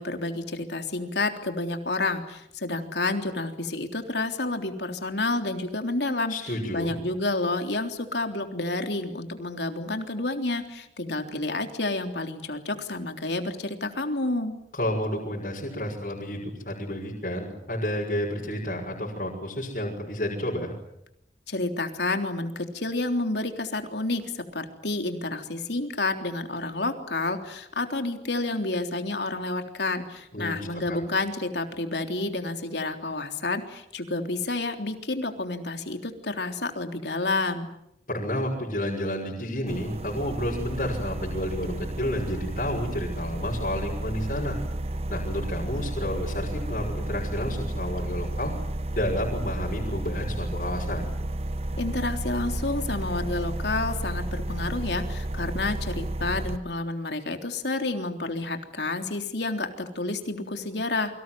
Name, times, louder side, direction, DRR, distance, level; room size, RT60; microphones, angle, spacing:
voice 1, 0.0-6.3 6.7-14.5 21.5-37.7 51.8-61.1, left 2 dB, 80° left, 5 dB, 3.6 m, -29 dB
voice 2, 6.3-6.9 14.7-20.7 30.3-31.0 38.1-44.6 45.1-48.5 48.9-51.1, left 1 dB, 50° left, -3 dB, 6.3 m, -30 dB
sound 1, 39.7-56.6, right 1 dB, 35° right, 1.1 m, -32 dB
29.0 x 24.5 x 7.8 m, 0.78 s
head